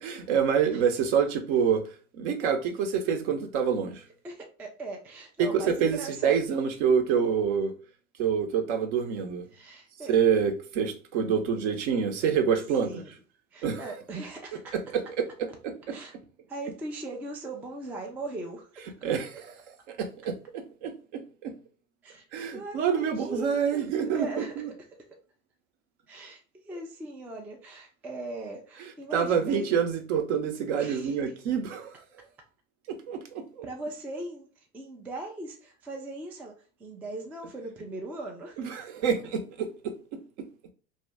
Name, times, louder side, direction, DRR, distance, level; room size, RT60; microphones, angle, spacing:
voice 1, 0.0-1.8 2.1-4.0 5.4-7.7 8.2-9.4 10.1-13.0 13.6-13.9 14.7-15.2 15.6-16.0 19.0-19.6 20.0-21.5 22.3-24.7 29.1-31.9 32.9-33.7 38.6-40.2, right 7 dB, 60° right, 0.8 m, -27 dB
voice 2, 4.2-6.4 9.5-10.2 12.8-13.1 13.5-14.7 15.9-16.1 16.5-18.8 22.0-22.2 22.5-24.6 26.1-29.7 30.8-31.2 33.6-34.5 34.7-38.7, right 2 dB, 5° right, 0.3 m, -39 dB
2.7 x 2.7 x 3.4 m
hypercardioid pair, 85°, 40 cm